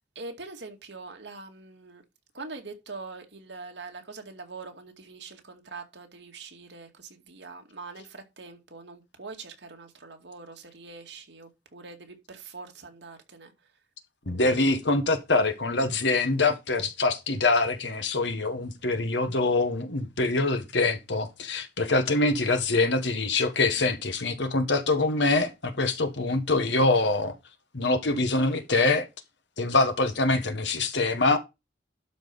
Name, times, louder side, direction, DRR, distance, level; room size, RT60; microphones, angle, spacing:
voice 1, 0.2-2.0 2.3-13.7 22.0-22.3 23.7-23.9, right 3 dB, 75° right, 2.2 m, -43 dB
voice 2, 14.2-27.3 27.7-29.1 29.6-31.4, left 3 dB, 75° left, 1.5 m, -24 dB
12.0 x 4.6 x 5.3 m
head